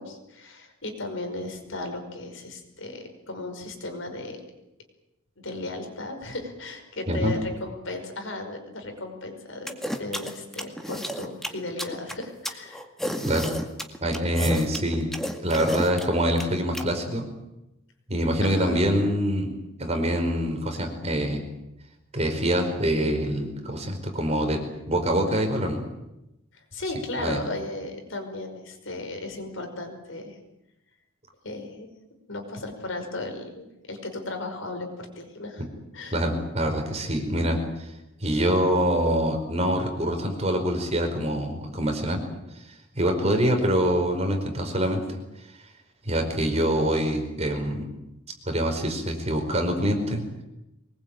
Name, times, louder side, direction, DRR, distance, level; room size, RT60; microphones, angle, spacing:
voice 1, 0.0-4.4 5.4-12.8 18.4-18.9 26.5-30.4 31.4-31.9 32.3-35.7 35.9-36.2, left 2 dB, 70° left, 5 dB, 5.4 m, -35 dB
sound 1, 9.7-16.8, equal, ahead, 2.0 m, -31 dB
voice 2, 14.0-15.1 15.4-17.2 18.1-19.5 19.8-21.4 22.1-24.6 24.9-25.8 27.2-27.4 36.1-37.9 38.2-42.2 42.9-45.0 46.0-47.8 48.5-50.2, equal, 30° right, 4 dB, 4.9 m, -25 dB
24.0 x 21.0 x 9.0 m, 0.91 s
head